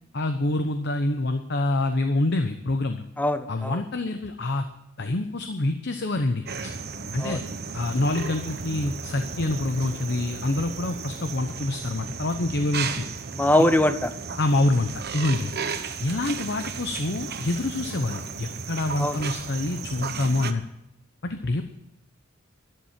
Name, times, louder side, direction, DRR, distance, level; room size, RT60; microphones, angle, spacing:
voice 1, 0.1-3.0 3.5-4.6 5.0-6.7 7.1-7.4 7.7-13.1 13.6-13.7 14.4-15.5 16.0-20.6 21.2-21.6, left 2 dB, 55° left, 7 dB, 0.9 m, -26 dB
voice 2, 3.2-3.8 7.2-7.4 13.4-14.1 19.0-19.2, left 1 dB, 10° left, 10 dB, 0.9 m, -22 dB
sound 1, 6.5-20.5, right 5 dB, 55° right, 1.1 m, -35 dB
12.0 x 11.5 x 7.4 m, 0.81 s
head